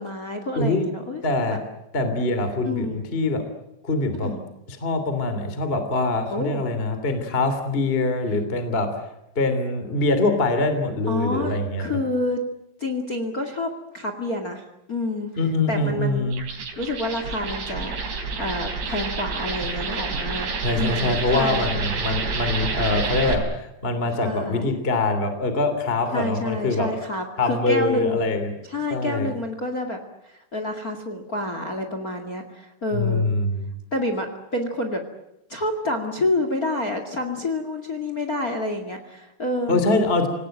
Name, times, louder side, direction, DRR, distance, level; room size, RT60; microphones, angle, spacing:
voice 1, 0.0-1.2 1.5-1.6 2.6-3.0 4.2-4.4 6.3-6.6 11.1-12.4 12.8-14.6 14.9-15.3 15.7-16.3 16.7-20.5 20.7-21.7 24.2-24.7 26.1-28.2 28.7-30.0 30.2-33.3 33.9-35.0 35.5-39.8, left 2 dB, 30° left, 6 dB, 1.6 m, -28 dB
voice 2, 1.2-1.6 1.9-3.4 3.8-4.3 4.7-9.0 9.3-11.9 15.4-16.4 20.6-26.9 27.4-28.5 28.9-29.3 32.9-33.7 39.7-40.3, left 2 dB, 15° left, 8 dB, 2.4 m, -23 dB
sound 1, 16.3-23.3, right 4 dB, 65° right, 5.6 m, -29 dB
27.0 x 18.5 x 9.1 m, 0.87 s
omnidirectional pair, 5.0 m